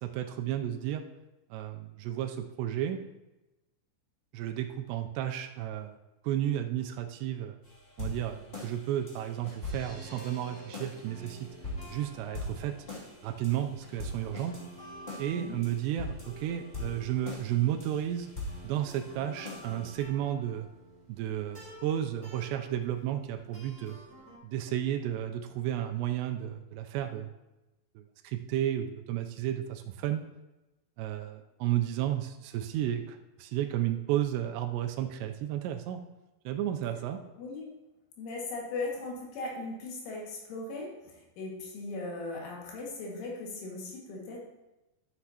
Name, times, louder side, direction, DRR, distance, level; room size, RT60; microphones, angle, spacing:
voice 1, 0.0-1.0 1.5-3.0 4.3-6.0 6.2-7.6 8.0-11.5 11.9-12.7 13.2-14.5 15.2-18.3 18.6-20.7 21.1-24.0 24.4-27.3 28.0-30.2 31.0-36.0 36.5-37.2, right 11 dB, 85° right, 5 dB, 2.5 m, -32 dB
sound 1, 7.6-20.0, left 2 dB, 20° left, 1.4 m, -43 dB
sound 2, 9.8-24.4, right 1 dB, ahead, 2.2 m, -50 dB
voice 2, 37.3-37.7 38.2-44.4, left 2 dB, 85° left, -2 dB, 4.4 m, -38 dB
12.0 x 8.0 x 2.9 m, 1.0 s
omnidirectional pair, 5.4 m